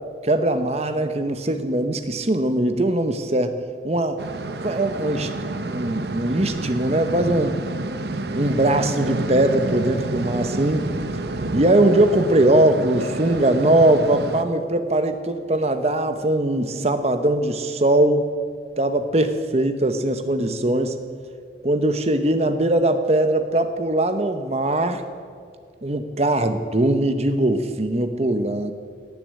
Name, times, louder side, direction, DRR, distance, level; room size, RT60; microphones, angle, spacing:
voice 1, 0.2-3.6 3.8-4.2 4.6-5.3 5.7-7.6 8.3-10.9 11.5-18.3 18.8-21.0 21.6-25.0 25.8-28.7, right 1 dB, 35° right, 9 dB, 0.9 m, -21 dB
sound 1, 4.2-14.4, right 2 dB, 60° right, 0.8 m, -29 dB
18.0 x 7.0 x 8.3 m, 2.1 s
head